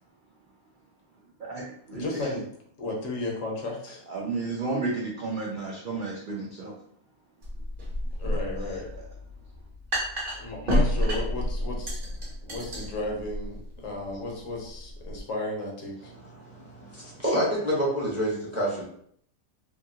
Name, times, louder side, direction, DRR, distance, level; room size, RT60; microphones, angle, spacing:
voice 1, 1.4-2.3 4.1-6.8 8.6-9.0, right 3 dB, 75° right, -3 dB, 0.4 m, -33 dB
voice 2, 1.9-2.4 2.8-4.0 8.2-8.9 10.4-12.0 12.4-16.1, left 2 dB, 70° left, 0 dB, 1.1 m, -34 dB
sound 1, 7.4-15.2, equal, 40° right, 0.9 m, -30 dB
voice 3, 16.3-18.8, equal, 15° right, -5 dB, 0.6 m, -28 dB
2.8 x 2.7 x 2.7 m, 0.64 s
omnidirectional pair, 1.5 m